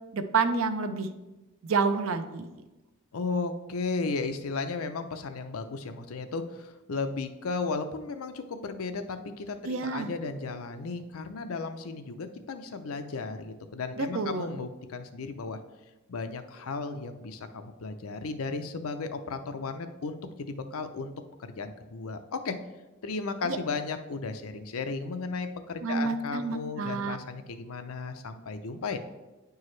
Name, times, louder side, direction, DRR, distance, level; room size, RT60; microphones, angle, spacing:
voice 1, 0.1-1.1 1.6-2.5 9.6-10.1 14.0-14.5 23.4-23.6 25.8-27.2, right 4 dB, 70° right, 9 dB, 0.5 m, -29 dB
voice 2, 3.1-15.6 16.1-21.1 21.4-22.6 23.0-29.0, left 4 dB, 90° left, 8 dB, 0.6 m, -35 dB
9.4 x 4.7 x 3.2 m, 1.1 s
head